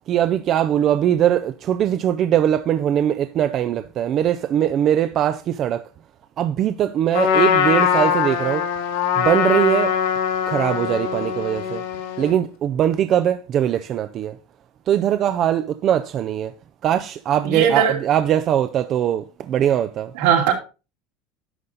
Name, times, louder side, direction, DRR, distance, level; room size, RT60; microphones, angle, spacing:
voice 1, 0.1-5.8 6.4-8.7 9.2-9.9 10.5-11.8 12.2-14.4 14.9-16.5 16.8-20.1, right 10 dB, 35° right, 0.5 m, -21 dB
Trumpet, 7.1-12.4, left 8 dB, 80° left, 2.3 m, -21 dB
voice 2, 17.4-18.0 20.1-20.5, right 8 dB, 75° right, 2.6 m, -18 dB
11.0 x 6.6 x 3.9 m
cardioid pair, 150°, 0 cm